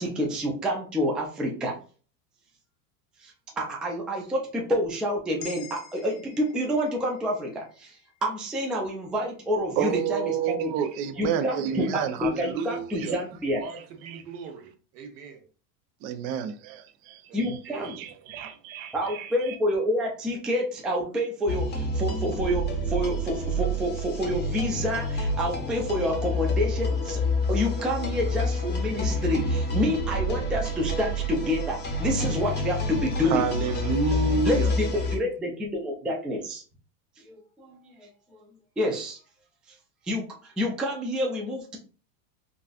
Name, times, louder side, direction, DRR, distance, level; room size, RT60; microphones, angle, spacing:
voice 1, 0.0-1.8 3.2-10.7 11.2-13.6 17.3-18.0 18.9-33.5 34.4-36.6 37.2-38.4 38.8-39.2 39.7-39.8 40.0-41.8, equal, ahead, 0.3 m, -28 dB
sound 1, 5.4-9.7, left 7 dB, 70° left, 0.6 m, -49 dB
voice 2, 9.8-13.2 16.0-17.2 17.8-19.3 33.3-34.7, right 6 dB, 60° right, 0.6 m, -29 dB
voice 3, 11.4-11.9 13.5-15.4 17.3-18.3, right 5 dB, 75° right, 1.1 m, -43 dB
sound 2, 21.5-35.2, left 1 dB, 20° left, 0.7 m, -28 dB
4.0 x 2.4 x 2.4 m
hypercardioid pair, 110°, 48 cm